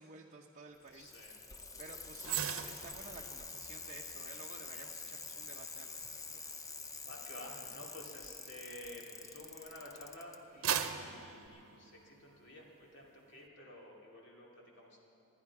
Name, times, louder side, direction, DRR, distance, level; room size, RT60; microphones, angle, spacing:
voice 1, 0.0-1.1 1.8-6.1 6.3-6.4, right 3 dB, 35° right, 0 dB, 0.8 m, -53 dB
Bicycle, 0.7-10.4 11.5-11.6, left 4 dB, 15° left, 0.6 m, -47 dB
voice 2, 0.9-1.4 2.3-2.4 7.0-15.0, left 1 dB, 60° left, -2 dB, 2.8 m, -52 dB
sound 1, 2.2-9.6 10.1-12.5 12.8-13.0, right 9 dB, 85° right, 0.8 m, -42 dB
27.0 x 10.0 x 4.8 m, 2.7 s
head